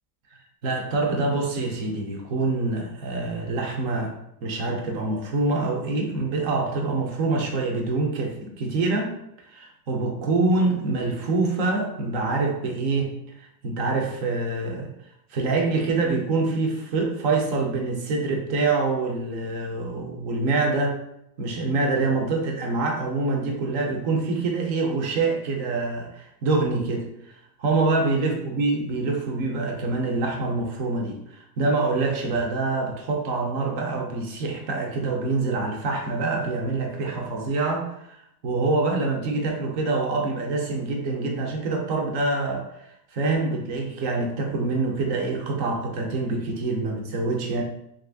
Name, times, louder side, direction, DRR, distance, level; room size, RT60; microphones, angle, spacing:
voice 1, 0.6-4.1 4.4-9.1 9.5-13.1 13.6-14.9 15.3-21.0 21.4-27.1 27.6-42.7 43.1-47.6, right 3 dB, 35° right, 2 dB, 0.4 m, -25 dB
2.9 x 2.5 x 3.3 m, 0.77 s
supercardioid pair, 175°, 47 cm